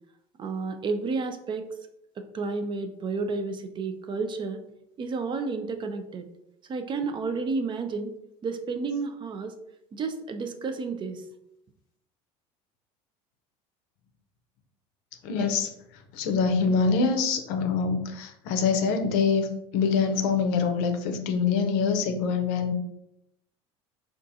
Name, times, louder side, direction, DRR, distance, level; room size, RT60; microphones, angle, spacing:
voice 1, 0.4-1.7 2.2-4.6 5.0-6.3 6.7-8.1 8.4-9.6 9.9-11.3, right 4 dB, 30° right, 7 dB, 0.4 m, -31 dB
voice 2, 15.2-15.7 16.1-22.7, left 5 dB, 75° left, 6 dB, 0.5 m, -25 dB
3.5 x 2.4 x 2.7 m, 0.81 s
supercardioid pair, 95°, 16 cm